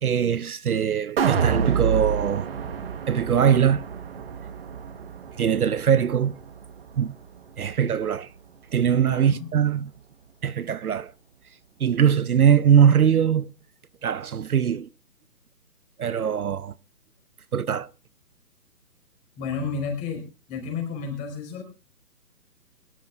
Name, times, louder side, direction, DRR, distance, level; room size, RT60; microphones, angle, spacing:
voice 1, 0.0-2.5 3.1-3.8 5.4-6.4 7.0-7.1 7.6-8.3 8.7-9.9 10.4-11.1 11.8-13.5 14.0-14.9 16.0-16.7 17.5-17.9, right 8 dB, 65° right, 0.8 m, -21 dB
sound 1, 1.2-7.4 7.8-7.9, right 7 dB, 35° right, 1.3 m, -29 dB
voice 2, 8.9-9.5 19.4-20.2 20.5-21.6, left 5 dB, 15° left, 4.6 m, -31 dB
24.0 x 12.5 x 2.5 m
hypercardioid pair, 155°, 48 cm